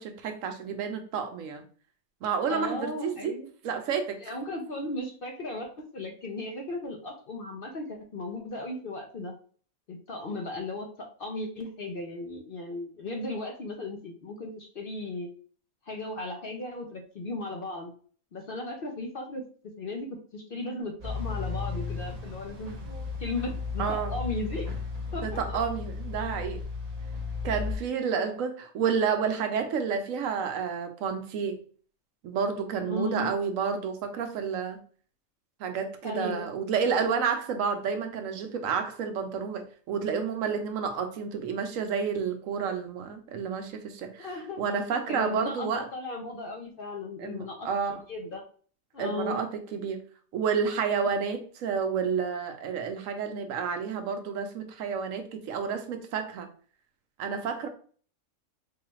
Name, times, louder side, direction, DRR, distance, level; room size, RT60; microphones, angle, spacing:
voice 1, 0.0-1.6 2.2-3.3 3.6-4.2 23.8-24.1 25.2-26.6 27.4-31.6 32.2-34.8 35.6-44.3 44.6-45.9 47.2-48.0 49.0-50.0 50.3-56.5 57.2-57.7, right 6 dB, 75° right, 1.0 m, -30 dB
voice 2, 2.5-3.5 4.2-5.7 5.9-9.3 9.9-15.3 15.9-17.9 18.3-19.4 19.8-20.1 20.3-22.9 23.2-24.7 25.1-25.6 32.8-33.3 36.0-36.5 44.2-44.6 45.1-48.4 48.9-49.4, left 2 dB, 55° left, 0.7 m, -36 dB
sound 1, 21.0-27.7, left 4 dB, 40° right, 0.6 m, -34 dB
4.7 x 2.3 x 3.1 m
omnidirectional pair, 1.5 m